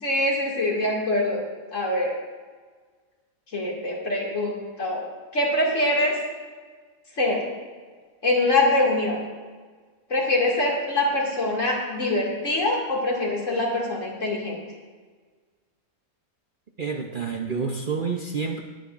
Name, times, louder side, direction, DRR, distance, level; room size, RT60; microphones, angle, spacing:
voice 1, 0.0-1.4 1.7-2.2 3.5-5.1 5.3-6.2 7.2-7.4 8.2-9.2 10.1-14.6, left 2 dB, 55° left, -3 dB, 2.7 m, -24 dB
voice 2, 16.8-18.6, right 5 dB, 45° right, 2 dB, 0.7 m, -28 dB
21.0 x 9.0 x 2.5 m, 1.5 s
omnidirectional pair, 1.5 m